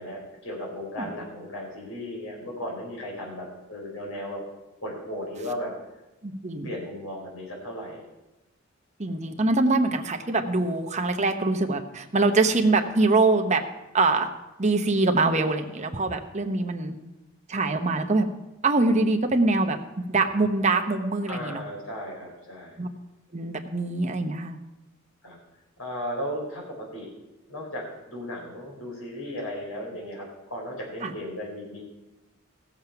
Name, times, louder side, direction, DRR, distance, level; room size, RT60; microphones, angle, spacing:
voice 1, 0.0-4.4 4.8-5.7 6.6-8.0 21.3-22.8 25.2-25.4 25.8-27.1 27.5-31.8, equal, 85° left, -2 dB, 4.9 m, -35 dB
voice 2, 6.2-6.7 9.0-13.6 13.9-14.3 14.6-17.0 17.5-18.3 18.6-21.6 22.8-22.9 23.3-24.6 31.0-31.1, right 3 dB, 35° right, 5 dB, 0.9 m, -24 dB
15.5 x 7.2 x 5.8 m, 0.99 s
head